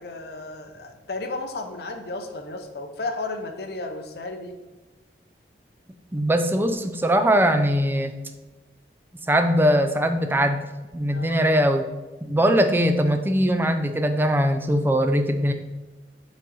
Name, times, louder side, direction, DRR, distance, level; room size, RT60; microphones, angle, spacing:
voice 1, 0.0-4.6 11.1-11.5, left 2 dB, 60° left, 5 dB, 0.7 m, -33 dB
voice 2, 6.1-8.1 9.3-10.6 10.9-11.9 12.2-15.5, equal, 10° right, 6 dB, 0.4 m, -21 dB
6.1 x 4.0 x 4.1 m, 1.2 s
head